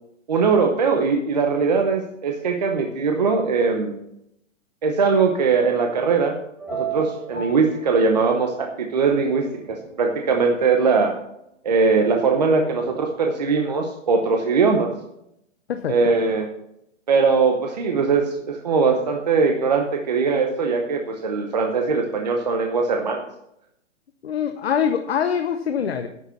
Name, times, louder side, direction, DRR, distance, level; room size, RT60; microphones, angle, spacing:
voice 1, 0.3-4.0 4.8-6.3 6.7-11.2 11.6-14.9 15.9-16.5 17.1-23.2, right 4 dB, 35° right, 3 dB, 0.8 m, -21 dB
sound 1, 6.6-8.7 9.2-10.3 12.1-13.5, right 6 dB, 5° right, 2.4 m, -36 dB
voice 2, 24.2-26.1, left 8 dB, 50° left, 8 dB, 0.8 m, -24 dB
9.6 x 6.4 x 6.8 m, 0.79 s
hypercardioid pair, 180°, 39 cm